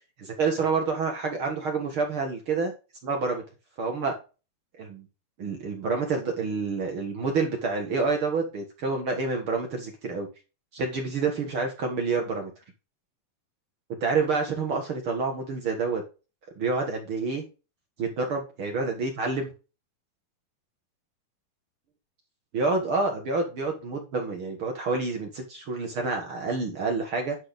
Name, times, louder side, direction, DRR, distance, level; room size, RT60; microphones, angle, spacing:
voice 1, 0.2-2.7 3.0-3.4 3.8-4.1 4.8-5.0 5.4-10.3 10.7-12.5 13.9-16.0 16.6-17.4 18.0-19.5 22.5-27.4, right 4 dB, 50° right, 2 dB, 1.8 m, -28 dB
10.0 x 4.2 x 5.2 m, 0.30 s
omnidirectional pair, 4.1 m